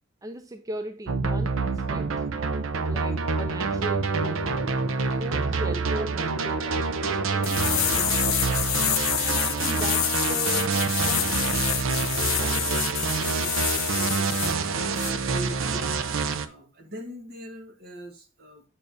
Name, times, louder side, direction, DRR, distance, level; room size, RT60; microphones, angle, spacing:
voice 1, 0.2-2.2 2.9-4.7 5.2-8.3 9.2-11.5 12.4-12.8, right 1 dB, 15° right, 0.4 m, -38 dB
sound 1, 1.1-16.5, right 4 dB, 85° right, 0.6 m, -27 dB
sound 2, 7.4-14.6 15.0-15.1, left 19 dB, 90° left, 0.3 m, -28 dB
voice 2, 13.3-14.6 15.3-15.9 16.3-18.6, right 1 dB, 50° right, 1.4 m, -41 dB
6.8 x 5.6 x 2.6 m
head